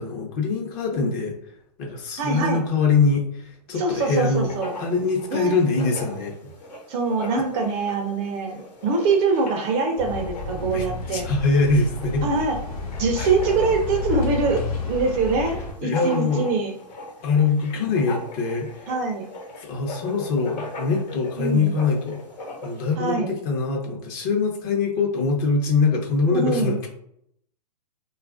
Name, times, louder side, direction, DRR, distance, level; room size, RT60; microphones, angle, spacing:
voice 1, 0.0-1.3 1.8-4.5 4.8-6.5 10.6-12.3 13.2-13.3 15.8-16.4 17.2-18.9 19.6-22.2 22.6-26.9, left 4 dB, 35° left, 1 dB, 0.7 m, -23 dB
voice 2, 2.2-2.6 3.8-4.7 5.3-5.5 6.9-11.3 12.2-12.6 13.0-16.7 18.9-19.3 21.4-21.7 23.0-23.3 26.3-26.8, right 4 dB, 30° right, 3 dB, 0.5 m, -24 dB
Writing, 4.2-23.0, left 1 dB, 85° left, 1.1 m, -39 dB
sound 1, 10.0-15.7, left 3 dB, 60° left, 1.0 m, -31 dB
3.0 x 2.4 x 2.4 m, 0.70 s
hypercardioid pair, 140°, 21 cm